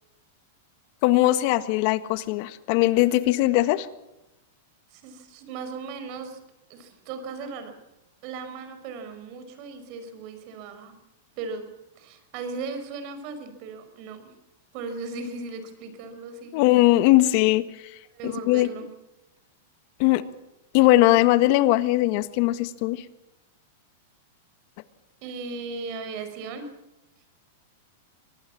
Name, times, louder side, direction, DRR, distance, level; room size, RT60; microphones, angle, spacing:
voice 1, 1.0-3.9 16.5-17.6 18.2-18.7 20.0-20.2 20.7-23.0, left 17 dB, 50° left, 13 dB, 1.5 m, -20 dB
voice 2, 4.9-6.4 6.7-7.7 8.2-10.9 11.4-11.7 12.0-14.3 14.7-16.6 18.1-18.9 25.2-26.7, right 4 dB, 50° right, 9 dB, 5.2 m, -37 dB
24.5 x 19.0 x 7.3 m, 0.93 s
hypercardioid pair, 135°, 0 cm